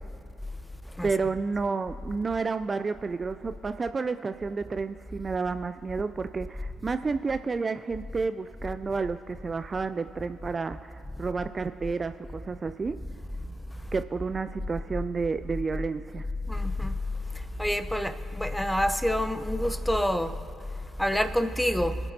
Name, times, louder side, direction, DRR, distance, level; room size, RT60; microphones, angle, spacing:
voice 1, 1.0-13.0 13.9-16.2, right 4 dB, 35° right, 0.3 m, -30 dB
voice 2, 16.5-16.9 17.6-20.3 21.0-22.0, left 1 dB, 5° left, 0.8 m, -27 dB
23.5 x 8.0 x 2.8 m
figure-of-eight pair, 45°, 0 cm